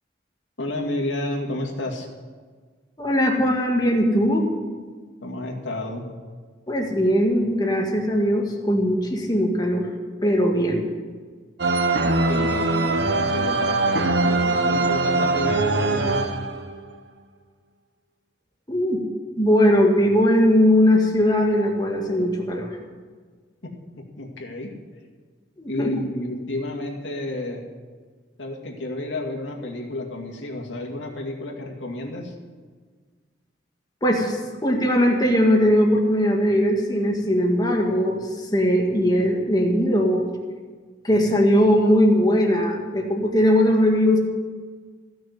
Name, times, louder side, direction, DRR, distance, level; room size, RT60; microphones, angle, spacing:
voice 1, 0.6-2.1 5.2-6.0 12.3-16.2 23.6-23.7 24.2-24.7 25.7-27.6 28.4-32.3, left 1 dB, 85° left, 1 dB, 2.3 m, -31 dB
voice 2, 3.0-4.5 6.7-9.9 10.2-10.9 18.7-19.0 19.4-22.7 25.6-25.9 34.0-38.2 38.5-40.2 41.0-44.2, equal, 20° left, 1 dB, 1.9 m, -19 dB
sound 1, 11.6-16.8, right 2 dB, 65° right, 0.9 m, -22 dB
15.5 x 6.4 x 9.3 m, 1.5 s
head